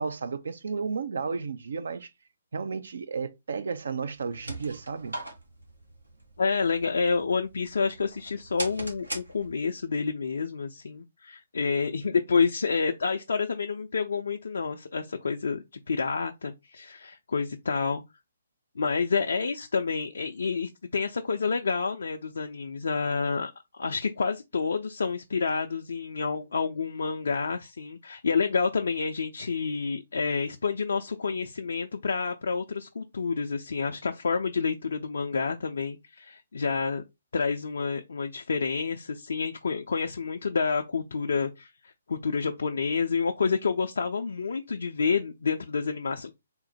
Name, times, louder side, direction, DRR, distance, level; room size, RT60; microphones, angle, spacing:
voice 1, 0.0-2.1 2.5-5.2, right 5 dB, 65° right, 0.5 m, -33 dB
sound 1, 4.1-9.8, right 1 dB, 90° right, 1.3 m, -41 dB
voice 2, 6.4-18.0 18.8-23.5 23.8-37.0 37.3-41.7 42.1-46.3, left 5 dB, 70° left, 0.4 m, -29 dB
3.7 x 2.1 x 4.1 m
figure-of-eight pair, 135°, 0 cm